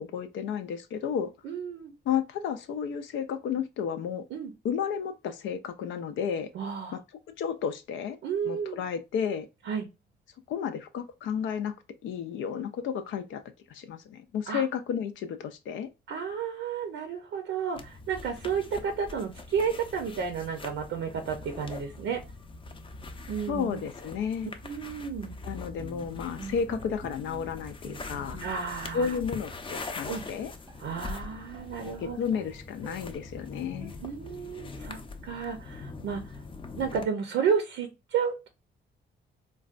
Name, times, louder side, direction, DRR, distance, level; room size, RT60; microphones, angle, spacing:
voice 1, 0.0-1.3 2.1-4.2 4.6-6.5 6.9-7.0 7.4-8.2 8.5-9.5 10.5-11.7 12.0-13.4 13.7-15.9 23.5-24.5 25.4-28.4 28.9-30.5 32.0-33.9, left 7 dB, 80° left, 0.4 m, -32 dB
voice 2, 1.4-1.9 4.3-4.5 6.5-7.0 8.2-8.8 9.7-9.9 14.5-14.6 16.1-22.2 23.3-23.8 24.6-25.3 28.4-29.2 30.1-30.2 30.8-32.2 34.0-36.4 36.8-38.5, right 6 dB, 85° right, 0.6 m, -32 dB
sound 1, 17.7-37.1, left 3 dB, 25° left, 0.5 m, -43 dB
Bowed string instrument, 25.8-28.8 29.2-29.4 29.8-29.9 30.1-32.0 32.3-33.1 33.8-34.4, right 2 dB, 20° right, 0.6 m, -47 dB
3.8 x 2.2 x 2.4 m
cardioid pair, 100°, 19 cm